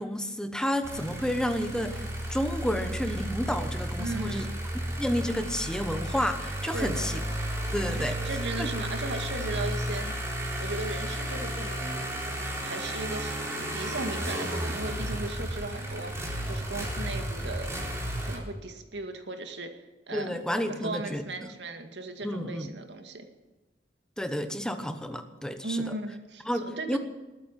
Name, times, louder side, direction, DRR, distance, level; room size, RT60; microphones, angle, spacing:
voice 1, 0.0-2.0 2.3-4.5 4.9-7.2 7.7-8.2 8.6-8.7 20.1-21.2 22.2-22.7 24.2-25.8 26.5-27.0, equal, 5° left, 8 dB, 1.1 m, -30 dB
sound 1, 0.8-18.4, right 1 dB, 15° right, 3.8 m, -33 dB
voice 2, 4.0-4.5 6.7-7.2 7.9-12.1 12.6-17.7 18.2-23.3 25.6-27.0, right 2 dB, 80° right, 6 dB, 2.1 m, -37 dB
20.5 x 9.3 x 7.5 m, 1.2 s
head